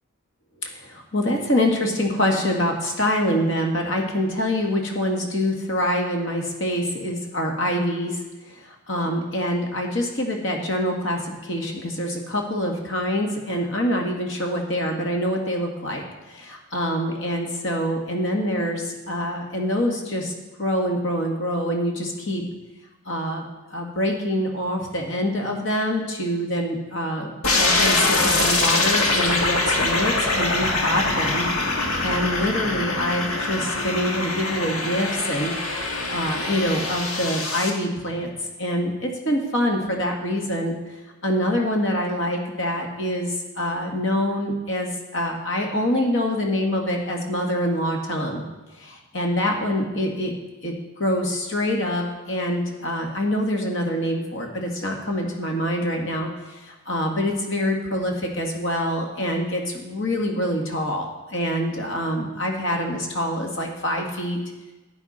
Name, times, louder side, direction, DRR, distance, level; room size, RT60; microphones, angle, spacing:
voice 1, 0.7-8.2 8.5-20.3 20.6-22.4 23.1-23.4 23.7-35.5 36.1-40.7 41.2-48.5 48.8-50.3 50.6-50.7 51.0-56.3 56.6-64.4, left 1 dB, 60° left, 1 dB, 1.8 m, -25 dB
sound 1, 27.4-37.7, left 2 dB, 80° left, 1.6 m, -23 dB
13.0 x 9.3 x 4.2 m, 1.1 s
head